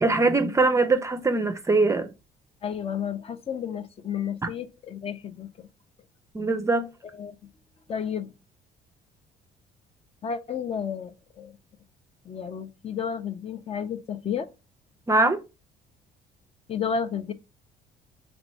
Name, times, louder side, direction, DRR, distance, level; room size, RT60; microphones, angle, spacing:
voice 1, 0.0-2.1 6.3-6.9 15.1-15.4, right 3 dB, 15° right, 0.4 m, -22 dB
voice 2, 2.6-5.7 7.1-7.4 7.9-8.3 10.2-11.5 12.2-14.5 16.7-17.3, left 7 dB, 35° left, 0.5 m, -32 dB
3.0 x 2.6 x 4.2 m
cardioid pair, 110°, 17 cm